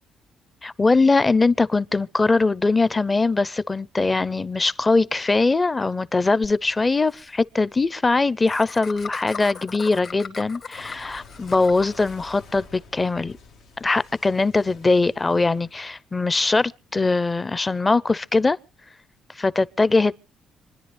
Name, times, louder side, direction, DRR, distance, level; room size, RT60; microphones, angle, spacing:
voice 1, 0.6-13.3 13.8-18.6 19.4-20.2, left 3 dB, 25° left, 0.6 m, -21 dB
Clock, 1.0-4.0 4.3-7.3 7.6-16.4, left 4 dB, 90° left, 1.9 m, -49 dB
Laughter, 6.4-6.5 6.8-6.9 7.1-7.3 8.5-12.1, left 5 dB, 55° left, 1.9 m, -38 dB
26.5 x 10.5 x 3.4 m
cardioid pair, 90°, 0 cm